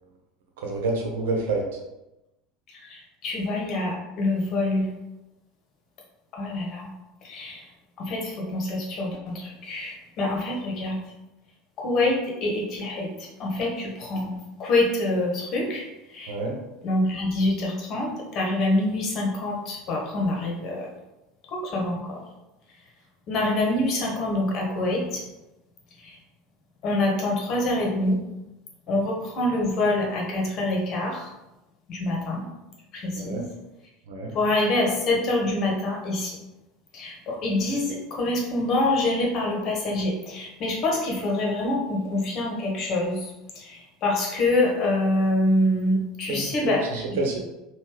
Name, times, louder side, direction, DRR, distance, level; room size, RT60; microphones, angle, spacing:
voice 1, 0.6-1.6 16.3-16.5 33.1-33.4 34.1-34.3 46.3-47.4, right 3 dB, 65° right, 1 dB, 1.0 m, -28 dB
voice 2, 2.7-4.9 6.3-6.9 7.2-7.6 8.0-11.0 11.8-14.3 14.6-15.8 16.1-16.4 16.8-20.9 21.5-22.2 23.3-25.2 26.0-26.2 26.8-28.2 28.9-31.3 31.9-32.4 32.9-33.5 34.3-36.4 36.9-47.2, left 2 dB, 45° left, -1 dB, 1.4 m, -26 dB
5.5 x 2.7 x 3.3 m, 0.97 s
figure-of-eight pair, 70°, 0 cm